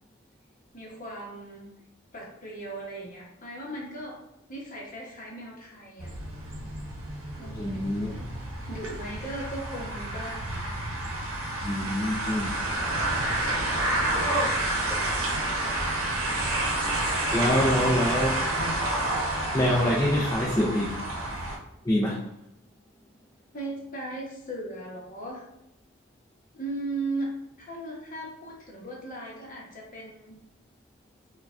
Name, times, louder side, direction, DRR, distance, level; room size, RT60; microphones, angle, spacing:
voice 1, 0.7-1.6 2.1-4.2 4.5-6.2 7.4-8.0 8.7-10.6 13.3-14.3 23.5-25.4 26.5-27.3 27.6-30.4, right 2 dB, 40° left, -3 dB, 0.9 m, -37 dB
sound 1, 6.0-21.6, right 1 dB, 75° right, 0.8 m, -29 dB
voice 2, 7.5-8.1 11.6-12.6 17.3-18.5 19.5-21.0 21.9-22.2, equal, 15° left, -5 dB, 0.3 m, -25 dB
4.6 x 2.3 x 2.4 m, 0.86 s
head